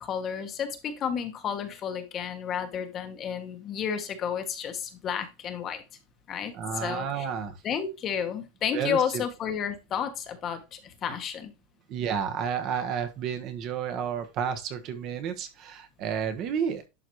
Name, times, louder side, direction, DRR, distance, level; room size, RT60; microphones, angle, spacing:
voice 1, 0.0-5.8 6.3-7.3 7.6-11.5, left 8 dB, 25° left, 1.2 m, -31 dB
voice 2, 6.5-7.6 8.7-9.2 11.9-16.9, right 7 dB, 35° right, 1.3 m, -31 dB
11.0 x 4.1 x 3.1 m
supercardioid pair, 160°, 0 cm